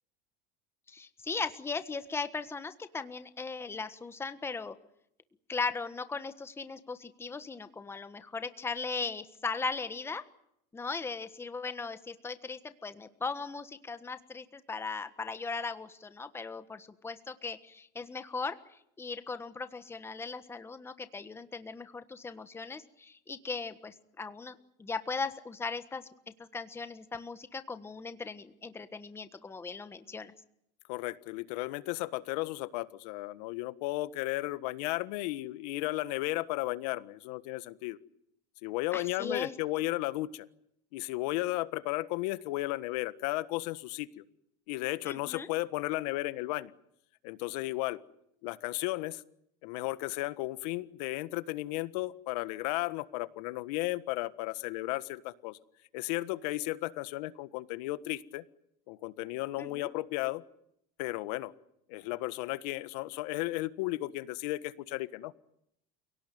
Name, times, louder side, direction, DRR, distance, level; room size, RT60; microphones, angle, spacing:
voice 1, 0.9-4.7 5.5-10.2 10.7-18.6 19.0-26.1 26.4-30.3 38.9-39.5 45.0-45.5 59.6-59.9, left 4 dB, 10° left, 11 dB, 1.4 m, -38 dB
voice 2, 30.9-38.0 38.6-40.4 40.9-44.2 44.7-46.7 47.2-48.0 48.4-49.2 49.6-55.6 55.9-58.4 58.9-60.4 61.0-61.5 61.9-65.3, left 19 dB, 70° left, 14 dB, 1.5 m, -34 dB
29.5 x 18.0 x 9.4 m, 0.75 s
supercardioid pair, 135°, 21 cm